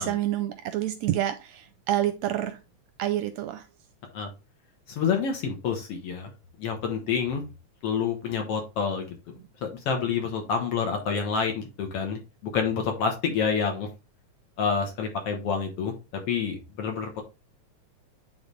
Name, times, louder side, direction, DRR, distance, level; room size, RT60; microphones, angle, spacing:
voice 1, 0.0-1.6 1.9-2.5 3.0-3.6, right 12 dB, 75° right, 8 dB, 1.7 m, -27 dB
voice 2, 4.9-6.3 6.6-7.4 7.8-9.2 9.6-13.9 14.6-15.9 16.3-17.2, left 6 dB, 60° left, 3 dB, 1.9 m, -28 dB
9.5 x 3.9 x 3.2 m, 0.28 s
omnidirectional pair, 3.4 m